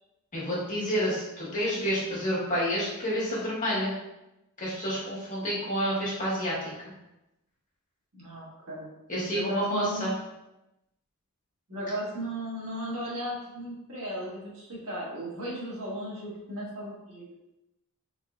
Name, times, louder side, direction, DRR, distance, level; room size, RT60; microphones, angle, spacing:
voice 1, 0.3-3.9 4.6-6.7 9.1-10.1, equal, 35° left, -7 dB, 1.5 m, -29 dB
voice 2, 8.1-8.9 9.3-10.1 11.7-17.3, equal, 80° right, -5 dB, 1.4 m, -36 dB
4.0 x 3.6 x 2.4 m, 0.94 s
head